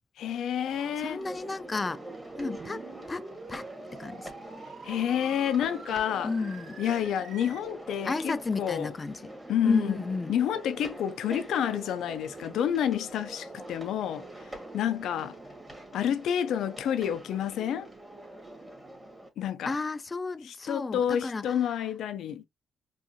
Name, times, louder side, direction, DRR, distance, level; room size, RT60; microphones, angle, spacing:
voice 1, 0.2-1.2 4.8-6.3 6.8-8.9 9.5-10.0 10.3-14.3 14.7-15.4 15.9-17.9 19.4-19.8 20.4-22.4, left 9 dB, 75° left, 0.6 m, -29 dB
sound 1, 0.6-19.3, right 2 dB, 15° right, 1.8 m, -44 dB
voice 2, 1.0-2.0 2.4-3.2 3.5-3.6 4.0-4.3 6.2-6.8 8.0-9.3 9.6-10.3 19.6-21.4, left 3 dB, 25° left, 0.4 m, -32 dB
sound 2, 2.6-7.6, right 4 dB, 55° right, 1.2 m, -46 dB
4.6 x 2.6 x 2.8 m
cardioid pair, 90°, 0 cm